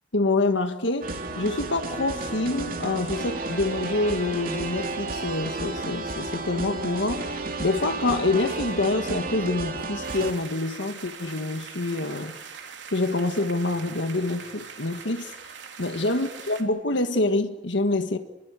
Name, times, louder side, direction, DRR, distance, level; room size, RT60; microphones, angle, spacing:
voice 1, 0.1-12.3 12.9-15.3 15.8-18.2, left 2 dB, 75° left, 1.6 m, -26 dB
sound 1, 1.0-10.3, right 3 dB, 50° right, 2.6 m, -32 dB
sound 2, 10.0-16.6, right 6 dB, 75° right, 3.3 m, -42 dB
26.5 x 21.5 x 8.2 m
head